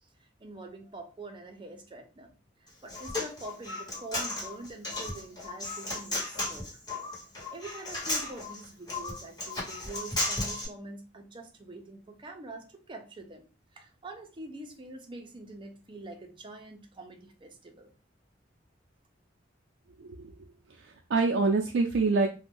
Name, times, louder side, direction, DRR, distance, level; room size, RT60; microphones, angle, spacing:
voice 1, 0.4-2.3 2.6-6.7 7.5-13.5 13.7-17.9, right 2 dB, 25° right, 3 dB, 0.6 m, -45 dB
Human voice, 2.7-10.6, left 2 dB, 20° left, 1.4 m, -34 dB
voice 2, 20.0-20.3 20.8-22.3, right 3 dB, 85° right, 2 dB, 0.4 m, -26 dB
2.5 x 2.2 x 3.4 m, 0.33 s
head